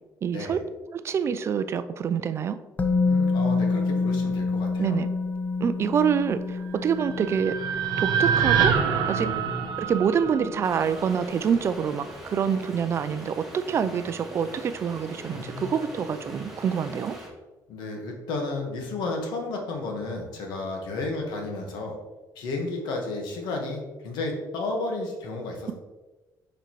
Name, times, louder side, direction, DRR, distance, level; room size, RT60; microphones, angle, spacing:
voice 1, 0.2-0.6 0.9-2.6 4.8-5.1 5.6-7.6 8.0-8.8 9.1-9.3 9.8-17.2, right 7 dB, 40° right, 12 dB, 0.3 m, -26 dB
Musical instrument, 2.8-10.7 11.0-11.1, left 3 dB, 25° left, 0.5 m, -28 dB
voice 2, 3.0-5.0 9.1-9.7 15.3-15.8 17.7-22.0 22.3-25.7, left 2 dB, 85° left, 1 dB, 1.4 m, -32 dB
sound 1, 6.8-11.1, right 7 dB, 75° right, 0.7 m, -26 dB
sound 2, 10.6-17.3, equal, 5° right, 1.4 m, -42 dB
6.7 x 5.2 x 3.1 m, 1.2 s
cardioid pair, 145°, 7 cm